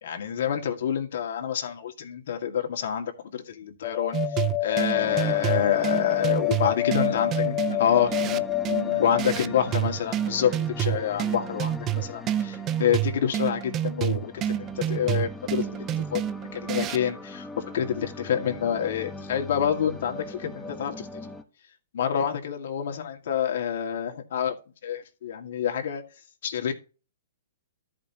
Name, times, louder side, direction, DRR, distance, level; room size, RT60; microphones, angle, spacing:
voice 1, 0.0-7.3 7.8-8.1 9.0-21.1 21.9-24.6 24.8-26.0 26.4-26.7, left 8 dB, 65° left, 2.0 m, -28 dB
sound 1, 3.8-9.2, left 17 dB, 30° left, 0.5 m, -27 dB
sound 2, 4.1-17.1, right 12 dB, 25° right, 0.5 m, -29 dB
sound 3, 4.9-21.4, left 3 dB, 5° left, 1.3 m, -42 dB
voice 2, 6.8-9.6, left 3 dB, 85° left, 1.3 m, -36 dB
13.5 x 5.3 x 2.9 m
hypercardioid pair, 135°, 0 cm